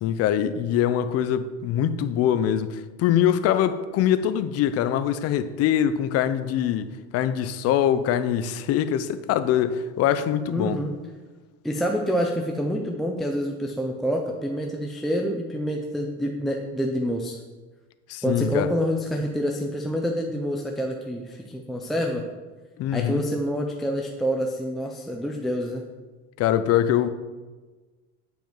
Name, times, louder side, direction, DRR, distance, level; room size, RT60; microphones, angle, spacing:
voice 1, 0.0-10.8 18.1-18.7 22.8-23.2 26.4-27.1, left 10 dB, 50° left, 0.6 m, -23 dB
voice 2, 10.5-10.9 11.6-17.4 18.2-22.2 22.9-25.8, equal, ahead, 0.4 m, -27 dB
9.1 x 5.2 x 4.6 m
cardioid pair, 150°, 31 cm